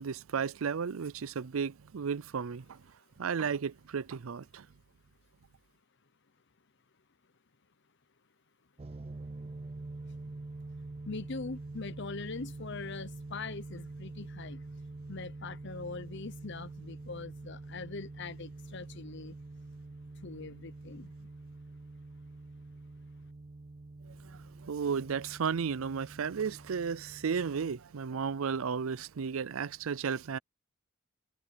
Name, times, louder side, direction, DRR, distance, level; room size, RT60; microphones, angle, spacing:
voice 1, 0.0-2.8 3.2-4.7 24.1-30.4, right 6 dB, 85° right, 0.5 m, -34 dB
sound 1, 8.8-27.8, right 2 dB, 30° right, 0.4 m, -46 dB
voice 2, 11.0-14.6 15.1-19.4 20.2-21.3, left 4 dB, 60° left, 1.0 m, -42 dB
head